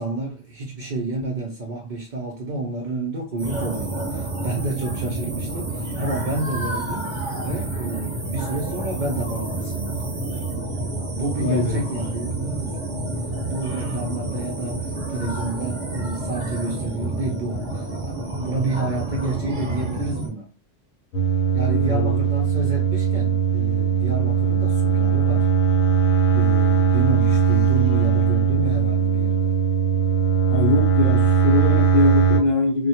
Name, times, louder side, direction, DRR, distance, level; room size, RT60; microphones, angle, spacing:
voice 1, 0.0-10.1 11.1-13.1 13.5-20.5 21.5-25.5 26.3-29.6, right 3 dB, 70° right, 0.4 m, -30 dB
sound 1, 3.4-20.3, right 2 dB, 30° right, 0.7 m, -29 dB
voice 2, 11.4-11.8 21.7-22.2 30.5-32.9, left 3 dB, 65° left, 0.5 m, -22 dB
sound 2, 21.1-32.4, right 7 dB, 90° left, 1.0 m, -19 dB
2.1 x 2.1 x 2.7 m
omnidirectional pair, 1.3 m